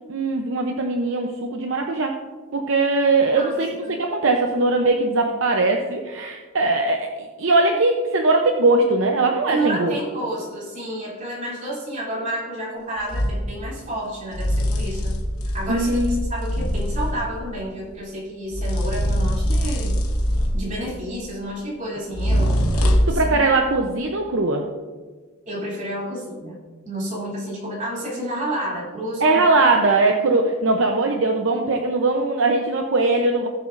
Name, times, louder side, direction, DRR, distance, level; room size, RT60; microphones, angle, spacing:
voice 1, 0.1-2.2 2.5-9.9 15.7-16.2 23.1-24.7 29.2-33.5, right 3 dB, 60° right, 3 dB, 0.7 m, -20 dB
voice 2, 3.3-4.0 9.5-15.1 15.5-19.9 20.5-23.4 25.5-26.6 26.8-29.6, right 1 dB, 35° right, -5 dB, 3.0 m, -30 dB
sound 1, 13.1-13.4 14.3-17.3 18.5-20.8 22.1-23.2, equal, 85° left, 1.1 m, -22 dB
18.0 x 7.0 x 2.6 m, 1.4 s
head